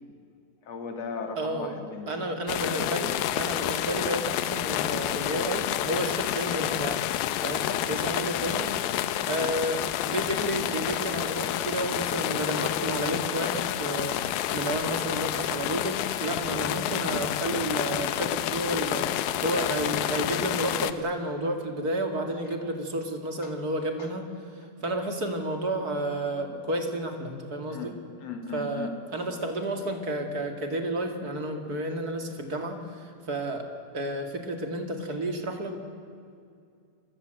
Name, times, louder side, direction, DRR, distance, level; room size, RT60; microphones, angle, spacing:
voice 1, 0.7-2.3 7.5-7.8 27.7-27.9 28.2-28.9, left 5 dB, 45° left, 5 dB, 3.1 m, -37 dB
voice 2, 1.4-1.8 2.1-7.0 7.4-8.7 9.2-28.0 28.5-33.7 33.9-35.8, right 1 dB, 30° right, 4 dB, 2.1 m, -31 dB
sound 1, 2.5-20.9, left 12 dB, 75° left, 2.5 m, -29 dB
28.0 x 20.5 x 7.8 m, 2.4 s
omnidirectional pair, 4.4 m